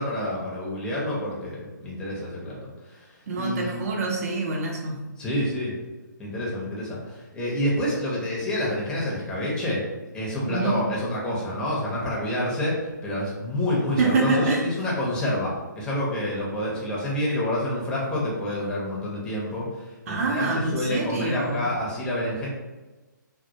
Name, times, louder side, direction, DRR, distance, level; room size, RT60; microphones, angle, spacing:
voice 1, 0.0-2.6 2.9-3.1 3.4-3.8 5.2-5.7 6.2-9.8 10.1-12.7 13.0-20.5 20.7-22.5, left 1 dB, 5° left, -5 dB, 0.6 m, -28 dB
voice 2, 3.3-5.0 10.4-10.8 14.0-14.7 20.1-21.7, right 3 dB, 45° right, -1 dB, 0.6 m, -26 dB
2.2 x 2.1 x 2.7 m, 1.2 s
figure-of-eight pair, 140°, 11 cm